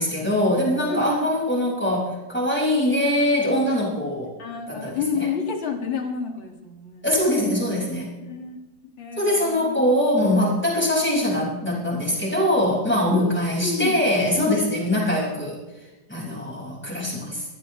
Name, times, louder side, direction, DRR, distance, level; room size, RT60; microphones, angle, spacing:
voice 1, 0.0-4.3 4.7-5.3 7.0-8.1 9.2-15.6 16.1-17.4, left 1 dB, 5° left, -3 dB, 5.5 m, -22 dB
voice 2, 0.9-1.3 2.9-3.6 4.0-4.1 4.4-7.1 8.2-8.6 9.0-9.8 13.1-14.0 14.4-15.0, left 6 dB, 75° left, 3 dB, 2.7 m, -30 dB
24.0 x 15.0 x 3.2 m, 1.1 s
omnidirectional pair, 2.1 m